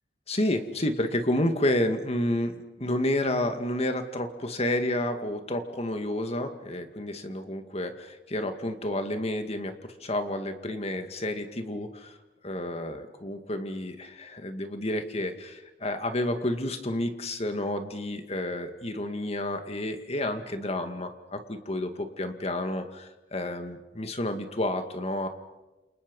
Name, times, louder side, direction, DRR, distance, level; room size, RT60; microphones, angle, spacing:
voice 1, 0.3-12.2 12.4-25.3, left 1 dB, 35° left, 7 dB, 2.2 m, -30 dB
29.0 x 29.0 x 5.5 m, 1.1 s
head